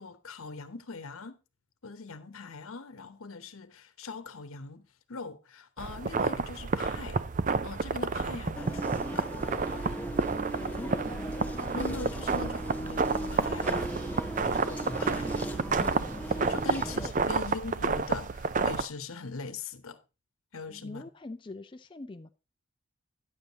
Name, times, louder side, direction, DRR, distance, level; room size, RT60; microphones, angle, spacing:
voice 1, 0.0-1.4 1.8-7.2 7.6-9.3 10.6-10.8 11.7-13.9 14.4-15.4 15.7-20.0 20.5-21.0, left 4 dB, 90° left, 0.9 m, -41 dB
sound 1, 5.8-18.9, right 4 dB, 40° right, 0.4 m, -30 dB
sound 2, 8.5-17.1, right 1 dB, 10° left, 0.8 m, -37 dB
voice 2, 10.3-11.4 16.6-17.1 20.7-22.3, left 2 dB, 25° left, 0.4 m, -44 dB
10.0 x 7.3 x 4.0 m
head